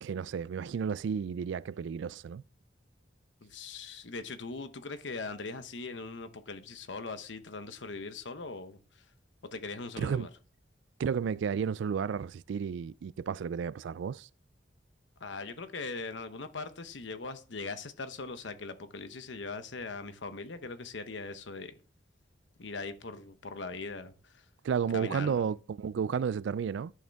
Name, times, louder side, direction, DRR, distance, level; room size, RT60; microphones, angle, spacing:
voice 1, 0.0-2.4 10.0-10.3 11.0-14.3 24.6-26.9, right 7 dB, 80° right, 0.3 m, -32 dB
voice 2, 3.4-8.8 9.5-10.3 15.2-21.7 22.6-24.4 24.9-25.5, left 3 dB, 80° left, 1.0 m, -40 dB
11.0 x 6.6 x 3.5 m
head